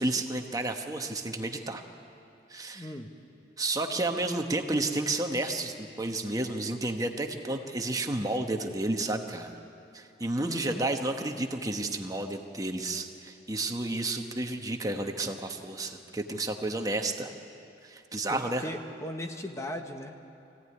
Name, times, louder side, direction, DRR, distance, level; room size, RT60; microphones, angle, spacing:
voice 1, 0.0-1.8 2.5-2.9 3.6-9.5 9.9-17.3 17.8-18.7, right 2 dB, 20° right, 4 dB, 1.1 m, -31 dB
voice 2, 2.7-3.1 10.4-10.8 18.3-20.2, left 1 dB, 15° left, 4 dB, 1.0 m, -37 dB
23.5 x 16.0 x 9.6 m, 2.7 s
head